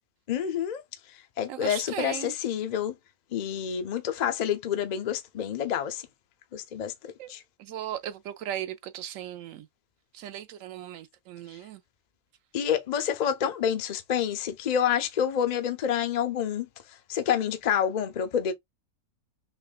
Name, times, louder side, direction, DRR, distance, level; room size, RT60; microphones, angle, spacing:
voice 1, 0.3-0.8 1.4-2.9 3.3-6.0 6.5-7.4 12.5-16.7 17.1-18.5, left 8 dB, 75° left, 0.4 m, -28 dB
voice 2, 1.5-2.3 7.2-7.3 7.6-9.7 10.1-11.8, right 11 dB, 70° right, 0.9 m, -37 dB
5.7 x 2.3 x 2.4 m
omnidirectional pair, 1.6 m